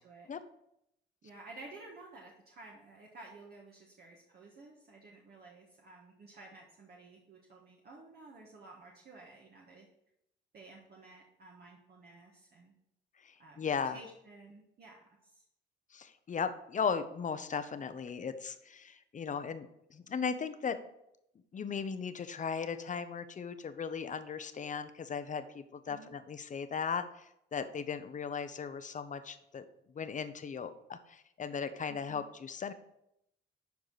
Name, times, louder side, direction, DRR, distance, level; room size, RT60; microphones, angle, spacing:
voice 1, 1.2-9.9 10.5-12.7 13.4-15.4 25.8-26.1 31.9-32.2, right 2 dB, 55° right, -2 dB, 1.6 m, -53 dB
voice 2, 13.2-14.0 15.9-20.8 21.5-29.6 29.9-32.7, left 6 dB, 40° left, 11 dB, 0.8 m, -37 dB
11.5 x 4.8 x 4.1 m, 0.80 s
cardioid pair, 90°, 20 cm